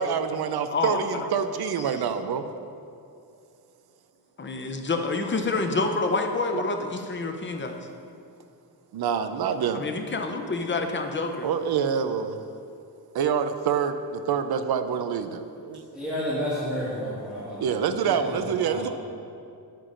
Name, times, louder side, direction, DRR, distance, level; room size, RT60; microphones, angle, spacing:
voice 1, 0.0-2.5 6.5-6.6 8.9-9.9 11.4-12.4 13.1-15.9 17.6-18.9, right 7 dB, 75° right, 9 dB, 0.6 m, -26 dB
voice 2, 0.7-1.3 4.4-7.9 9.7-11.5, left 3 dB, 30° left, 4 dB, 0.6 m, -28 dB
voice 3, 15.9-18.9, equal, 5° right, -12 dB, 1.7 m, -32 dB
10.0 x 9.1 x 2.5 m, 2.5 s
wide cardioid pair, 135°, 39 cm